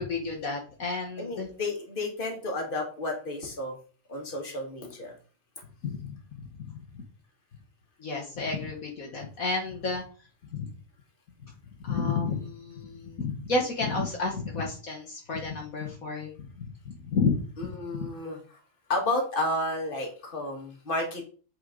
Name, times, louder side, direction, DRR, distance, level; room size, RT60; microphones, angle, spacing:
voice 1, 0.0-1.5 5.8-6.2 6.7-6.8 8.0-10.0 10.5-10.7 11.8-16.3 16.6-17.4, left 4 dB, 65° left, 0 dB, 1.8 m, -31 dB
voice 2, 1.2-3.7 4.1-5.1 17.6-18.4 18.9-21.3, left 2 dB, 35° left, 1 dB, 2.1 m, -31 dB
8.1 x 5.1 x 3.8 m, 0.39 s
omnidirectional pair, 1.6 m